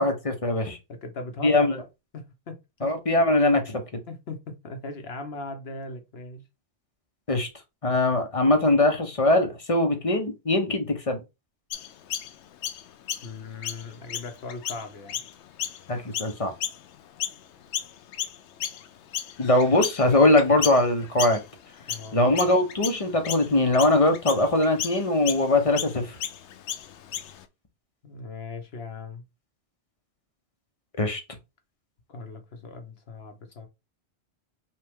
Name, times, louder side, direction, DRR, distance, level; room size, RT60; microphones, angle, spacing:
voice 1, 0.0-0.8 1.4-1.8 2.8-4.0 7.3-7.5 7.8-11.2 15.9-16.5 19.4-21.4 22.1-26.2 31.0-31.2, left 2 dB, 35° left, 0.9 m, -22 dB
voice 2, 0.9-1.8 2.1-2.9 4.1-6.4 13.2-15.2 21.9-22.2 28.0-29.2 32.1-33.7, left 3 dB, 65° left, 1.2 m, -39 dB
Chirp tweet, 11.7-17.4 17.7-27.4, left 9 dB, 80° left, 0.9 m, -34 dB
5.6 x 2.5 x 3.6 m
omnidirectional pair, 1.1 m